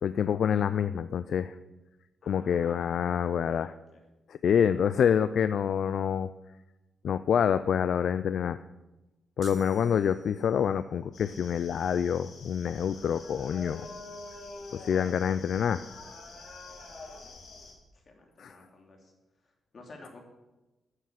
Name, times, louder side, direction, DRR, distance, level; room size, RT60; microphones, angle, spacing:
voice 1, 0.0-1.6 2.3-3.8 4.3-6.3 7.0-8.6 9.4-13.9 14.7-15.8 18.4-18.6, left 8 dB, 65° left, 13 dB, 0.4 m, -27 dB
voice 2, 2.2-3.7 3.9-4.0 16.9-17.1 18.0-19.1 19.4-20.2, left 2 dB, 40° left, 1 dB, 3.1 m, -52 dB
sound 1, 9.4-10.8, right 7 dB, 45° right, 0.8 m, -48 dB
sound 2, 11.1-17.7, left 3 dB, 80° left, 3.4 m, -46 dB
13.0 x 7.3 x 7.5 m, 1.1 s
wide cardioid pair, 150°, 0 cm